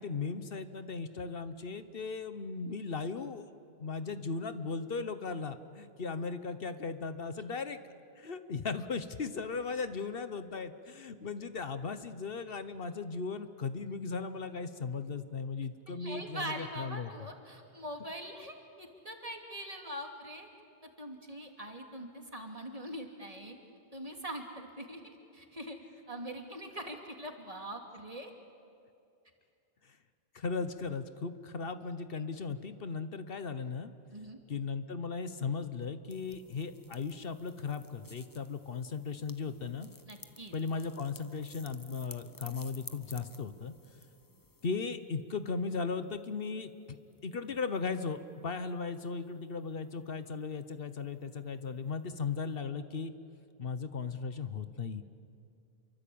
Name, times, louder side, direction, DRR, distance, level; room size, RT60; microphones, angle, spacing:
voice 1, 0.0-3.5 3.8-7.8 8.2-17.1 30.3-33.9 34.5-39.9 40.5-43.7 44.6-47.0 47.2-53.1 53.6-55.0, left 4 dB, 65° left, 11 dB, 1.2 m, -37 dB
voice 2, 15.9-20.5 21.0-23.6 23.9-25.8 26.1-28.3 34.1-34.4 40.1-40.6, right 1 dB, 35° right, 3 dB, 2.7 m, -43 dB
sound 1, 36.1-44.7, left 2 dB, 20° left, 1.1 m, -54 dB
28.5 x 24.0 x 8.6 m, 2.5 s
omnidirectional pair, 1.1 m